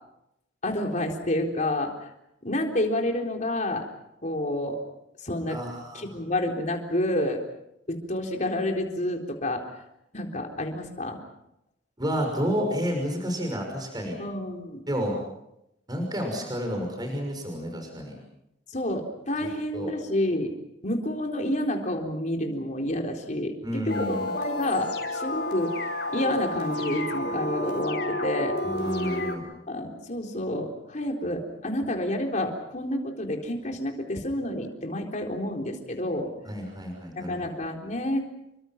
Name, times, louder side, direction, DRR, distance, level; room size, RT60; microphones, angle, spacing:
voice 1, 0.6-2.1 2.4-3.9 4.2-4.8 5.2-5.6 5.9-7.4 7.9-9.6 10.1-11.2 14.2-14.8 18.7-20.5 20.8-23.5 23.9-25.8 26.1-28.6 29.7-36.3 37.3-38.2, left 1 dB, 40° left, 2 dB, 4.0 m, -29 dB
voice 2, 5.5-6.1 12.0-14.2 14.9-15.2 15.9-18.2 19.4-19.9 23.6-24.3 28.6-29.5 36.5-37.4, equal, 20° right, 3 dB, 6.0 m, -30 dB
sound 1, 23.9-29.3, left 1 dB, 60° left, 4.9 m, -30 dB
29.0 x 24.0 x 6.0 m, 0.84 s
head